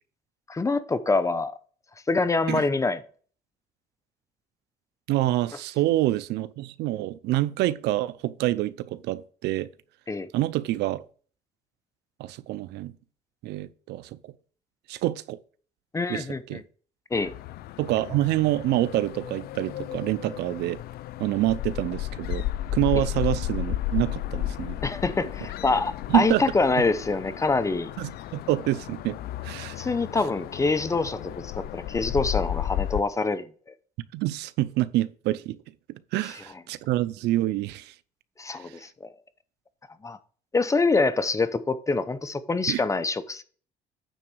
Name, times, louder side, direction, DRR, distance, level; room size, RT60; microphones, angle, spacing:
voice 1, 0.5-1.5 2.1-3.0 10.1-10.3 15.9-16.6 17.1-17.3 22.9-23.0 24.8-27.9 29.8-33.5 38.4-39.1 40.0-40.2 40.5-43.4, left 3 dB, 20° left, 0.7 m, -25 dB
voice 2, 5.1-9.7 10.3-11.0 12.2-12.9 13.4-14.3 14.9-15.4 16.1-16.6 17.8-20.8 21.2-22.5 22.7-24.8 26.1-26.4 28.0-29.2 29.4-29.8 34.1-35.6 36.1-37.9 38.5-38.8 42.7-42.8, right 15 dB, 80° right, 0.6 m, -27 dB
sound 1, 17.1-33.0, left 13 dB, 65° left, 0.5 m, -33 dB
9.2 x 3.9 x 6.3 m
cardioid pair, 110°, 17 cm